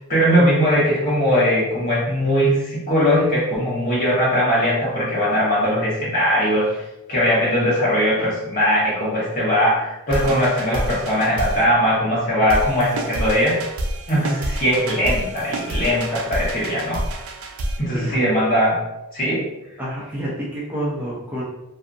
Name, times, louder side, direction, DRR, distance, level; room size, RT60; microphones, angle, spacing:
voice 1, 0.0-6.8 7.1-13.6 14.1-17.0 17.8-18.8 19.1-19.4, equal, 40° left, -6 dB, 1.1 m, -20 dB
sound 1, 10.1-11.6 12.5-17.8, right 1 dB, 70° right, 0.4 m, -28 dB
voice 2, 19.8-21.4, right 1 dB, 10° right, -7 dB, 0.5 m, -28 dB
2.6 x 2.4 x 2.5 m, 0.91 s
head